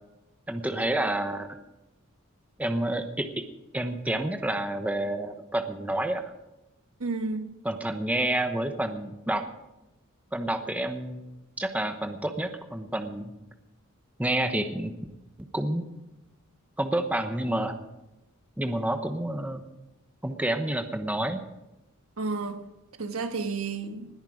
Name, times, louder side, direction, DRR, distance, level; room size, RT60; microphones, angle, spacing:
voice 1, 0.5-1.6 2.6-3.4 3.7-6.2 7.6-9.5 10.3-11.2 11.6-13.3 14.2-14.9 15.4-15.8 16.8-17.8 18.6-19.6 20.2-21.4, right 1 dB, 5° right, 7 dB, 1.0 m, -29 dB
voice 2, 7.0-7.5 22.2-22.6 23.0-24.1, right 4 dB, 75° right, 7 dB, 1.4 m, -31 dB
20.0 x 10.0 x 5.0 m, 0.97 s
head